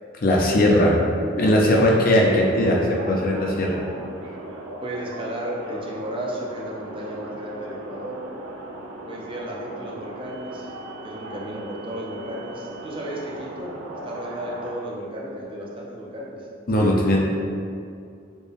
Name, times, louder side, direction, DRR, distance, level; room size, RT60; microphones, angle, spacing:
voice 1, 0.2-1.0 1.4-3.8 16.7-17.2, left 1 dB, 45° left, -2 dB, 0.5 m, -19 dB
sound 1, 2.1-14.7, right 1 dB, 85° right, 0.5 m, -38 dB
voice 2, 4.8-8.3 9.0-10.7 11.0-16.5, right 1 dB, 25° right, -3 dB, 0.4 m, -34 dB
4.2 x 2.2 x 3.3 m, 2.4 s
head